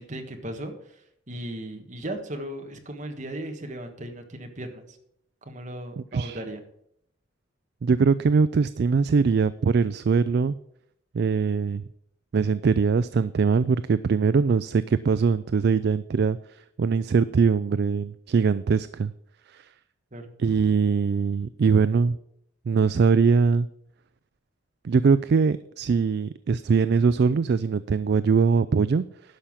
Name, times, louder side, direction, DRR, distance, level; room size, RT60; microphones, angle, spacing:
voice 1, 0.0-5.0 5.4-6.6 20.1-20.3, right 1 dB, 40° right, 4 dB, 1.5 m, -37 dB
voice 2, 7.8-10.6 11.1-11.8 12.3-19.1 19.5-19.7 20.4-22.2 22.7-23.7 24.8-29.0, right 5 dB, 55° right, 15 dB, 0.3 m, -22 dB
11.5 x 5.7 x 7.4 m, 0.73 s
head